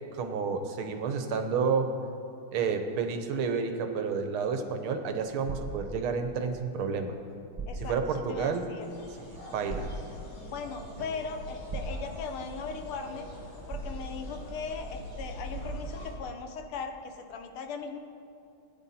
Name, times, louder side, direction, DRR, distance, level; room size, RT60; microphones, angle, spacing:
voice 1, 0.1-1.9 2.5-7.2 7.8-8.7 9.2-9.9, right 5 dB, 80° right, 6 dB, 1.8 m, -30 dB
sound 1, 5.5-5.9 7.1-7.2 7.6-8.0 9.7-10.0 11.7-12.1 13.7-14.1, right 2 dB, 40° right, 0.4 m, -37 dB
voice 2, 7.7-8.9 10.5-13.3 13.7-18.0, left 5 dB, 85° left, 5 dB, 1.9 m, -38 dB
sound 2, 8.8-16.1, equal, 60° left, 3.4 m, -43 dB
17.5 x 9.9 x 4.3 m, 2.6 s
omnidirectional pair, 2.3 m